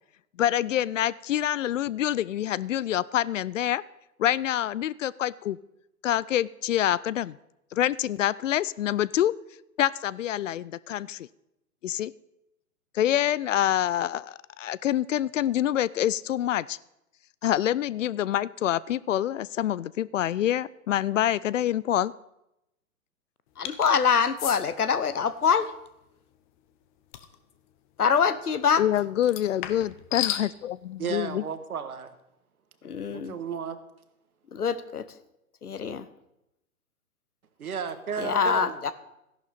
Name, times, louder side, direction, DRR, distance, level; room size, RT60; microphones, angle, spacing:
voice 1, 0.4-3.8 4.2-5.6 6.0-7.4 7.7-9.3 9.8-11.3 11.8-12.1 12.9-16.8 17.4-22.1 28.8-31.4, left 11 dB, 60° left, 21 dB, 0.5 m, -26 dB
voice 2, 23.6-25.7 28.0-28.8 32.8-33.3 34.5-35.0 35.6-36.1 38.2-38.9, left 6 dB, 85° left, 14 dB, 1.1 m, -24 dB
sound 1, 23.6-23.9 24.4-24.6 27.1-27.3 29.2-30.5, left 12 dB, 35° left, 1.0 m, -32 dB
voice 3, 31.0-32.1 33.1-33.8 37.6-38.9, right 6 dB, 75° right, 10 dB, 1.5 m, -33 dB
14.0 x 11.0 x 4.2 m, 0.86 s
figure-of-eight pair, 120°, 44 cm